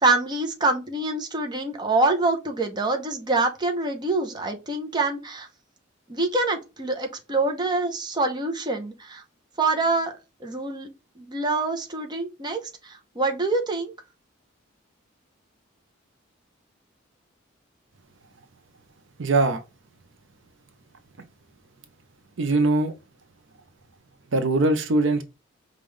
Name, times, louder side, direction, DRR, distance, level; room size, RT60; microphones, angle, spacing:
voice 1, 0.0-5.5 6.1-9.2 9.6-10.1 10.4-10.9 11.2-13.9, right 2 dB, 20° right, 0.8 m, -25 dB
voice 2, 19.2-19.6 22.4-22.9 24.3-25.2, right 2 dB, 65° right, 0.7 m, -21 dB
5.3 x 2.5 x 3.1 m
head